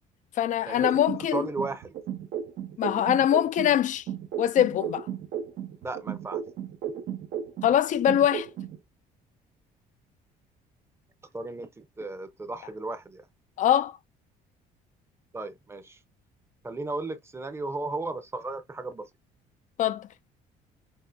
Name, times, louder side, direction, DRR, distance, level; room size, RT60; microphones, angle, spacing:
voice 1, 0.4-1.5 2.8-4.0 4.4-5.1 7.6-8.5 13.6-14.0 19.8-20.1, left 10 dB, 50° left, 0.5 m, -23 dB
sound 1, 0.8-3.8 4.1-7.8 8.1-8.8, right 9 dB, 65° right, 1.0 m, -34 dB
voice 2, 1.3-1.9 5.8-6.4 11.3-13.3 15.3-16.0 16.6-19.1, right 2 dB, 15° right, 0.8 m, -35 dB
5.5 x 2.7 x 2.7 m
cardioid pair, 105°, 16 cm